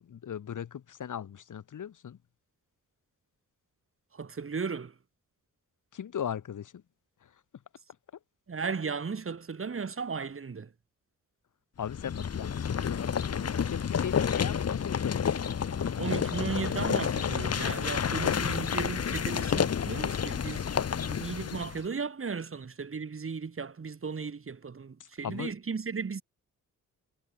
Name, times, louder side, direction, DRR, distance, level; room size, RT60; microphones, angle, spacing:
voice 1, 0.0-2.2 5.9-6.8 7.2-7.3 11.8-15.6 25.0-25.5, left 9 dB, 80° left, 6.9 m, -38 dB
voice 2, 4.1-4.9 8.5-10.7 16.0-20.7 21.1-26.2, right 5 dB, 45° right, 5.8 m, -35 dB
sound 1, 11.8-21.8, left 7 dB, 55° left, 1.8 m, -30 dB
cardioid pair, 95°, 31 cm